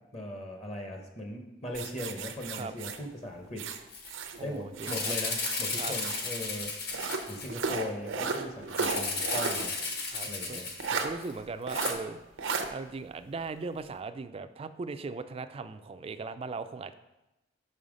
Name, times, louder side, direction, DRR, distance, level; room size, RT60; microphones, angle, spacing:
voice 1, 0.1-3.7 4.4-6.7 7.3-9.7 10.2-10.7, left 1 dB, 30° left, 2 dB, 0.8 m, -39 dB
sound 1, 1.7-4.4 4.7-6.3 6.9-9.7 10.0-10.1 10.8-11.1 11.7-12.0 12.4-12.7, right 4 dB, 85° right, 0.6 m, -34 dB
Rattle (instrument), 3.9-4.1 4.4-4.5 4.8-7.8 8.8-11.3 11.7-11.9, left 4 dB, 55° left, 1.3 m, -34 dB
voice 2, 4.4-5.2 5.8-5.9 10.1-10.6 10.9-12.2 12.7-16.9, right 4 dB, 30° right, 11 dB, 0.3 m, -39 dB
5.5 x 5.5 x 5.0 m, 0.99 s
head